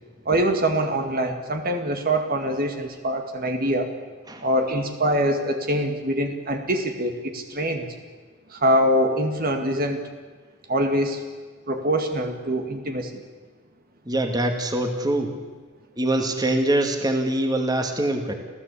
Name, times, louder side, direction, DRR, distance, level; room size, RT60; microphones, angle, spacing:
voice 1, 0.3-3.9 4.4-7.9 8.5-10.0 10.7-11.2 11.7-13.2, right 1 dB, 45° right, 5 dB, 2.1 m, -24 dB
voice 2, 14.1-15.3 16.0-18.3, right 1 dB, 20° right, 5 dB, 2.2 m, -23 dB
27.0 x 16.0 x 8.5 m, 1.4 s
head